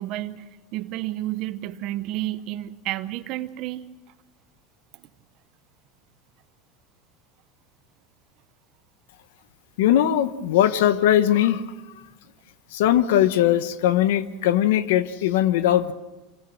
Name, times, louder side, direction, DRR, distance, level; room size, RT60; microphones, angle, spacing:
voice 1, 0.0-3.8, right 15 dB, 45° right, 11 dB, 0.8 m, -31 dB
voice 2, 9.8-11.6 12.7-15.9, left 11 dB, 80° left, 13 dB, 1.0 m, -20 dB
26.0 x 17.0 x 6.4 m, 1.1 s
supercardioid pair, 165°, 0 cm